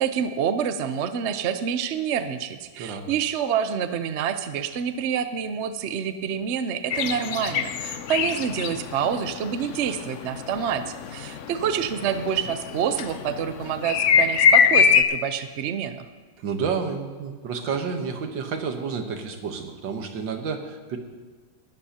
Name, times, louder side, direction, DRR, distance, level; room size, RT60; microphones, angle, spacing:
voice 1, 0.0-16.0, right 8 dB, 60° right, 10 dB, 0.7 m, -27 dB
voice 2, 2.8-3.1 16.4-21.0, right 5 dB, 80° right, 5 dB, 1.9 m, -30 dB
sound 1, 6.9-15.0, left 7 dB, 80° left, 0.6 m, -23 dB
19.5 x 12.0 x 2.9 m, 1.5 s
omnidirectional pair, 2.0 m